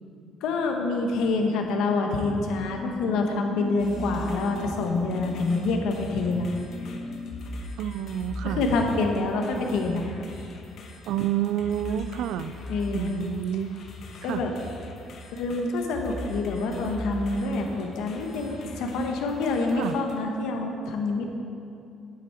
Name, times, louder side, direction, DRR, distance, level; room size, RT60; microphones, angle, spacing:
voice 1, 0.4-7.3 8.4-10.2 12.7-13.1 14.2-14.5 15.3-21.4, left 3 dB, 80° left, 3 dB, 1.1 m, -27 dB
sound 1, 3.8-20.2, equal, 60° left, 1.1 m, -41 dB
voice 2, 7.8-8.6 11.1-12.5 12.9-13.7 14.3-14.4 19.7-19.9, right 10 dB, 80° right, 12 dB, 0.4 m, -28 dB
8.4 x 8.2 x 4.5 m, 2.6 s
cardioid pair, 120°, 0 cm